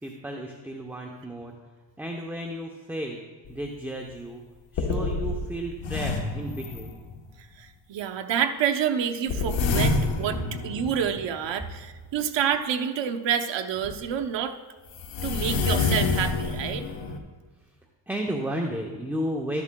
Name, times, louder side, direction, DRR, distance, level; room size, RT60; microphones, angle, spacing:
voice 1, 0.0-1.6 2.0-3.2 3.5-4.4 4.7-7.0 18.1-19.6, right 1 dB, 5° right, 1 dB, 0.7 m, -33 dB
sound 1, 3.5-3.6 4.1-4.2 4.8-7.3 9.3-11.6 13.8-14.0 14.9-17.2, left 3 dB, 70° left, 1.2 m, -28 dB
voice 2, 7.6-14.6 15.2-16.8, right 8 dB, 65° right, 6 dB, 0.8 m, -28 dB
13.5 x 11.0 x 2.2 m, 1.3 s
cardioid pair, 110°, 47 cm